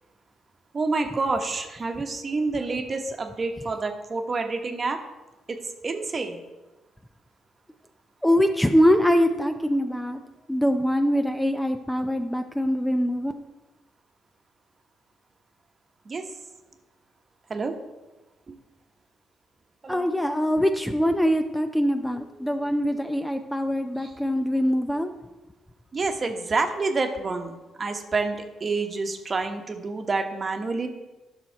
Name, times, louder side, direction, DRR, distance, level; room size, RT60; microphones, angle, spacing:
voice 1, 0.7-5.0 5.5-6.4 16.0-16.2 17.5-17.7 18.5-18.6 19.8-20.1 24.0-24.1 25.9-30.9, right 3 dB, 35° right, 6 dB, 1.1 m, -28 dB
voice 2, 8.2-10.2 10.5-13.3 19.9-25.1, equal, 5° left, 6 dB, 0.5 m, -23 dB
11.5 x 6.2 x 4.5 m, 1.1 s
cardioid pair, 90°, 0 cm